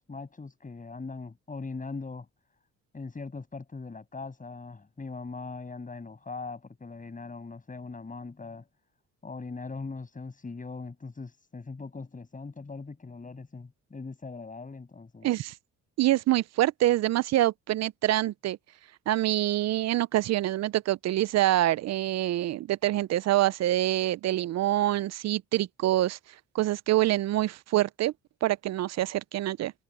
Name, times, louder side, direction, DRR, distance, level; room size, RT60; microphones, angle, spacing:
voice 1, 0.1-2.3 2.9-8.7 9.2-15.3, left 4 dB, 25° left, 7.9 m, -40 dB
voice 2, 15.2-15.5 16.0-18.6 19.1-26.2 26.5-28.1 28.4-29.7, right 14 dB, 60° right, 0.5 m, -26 dB
cardioid pair, 90°, 30 cm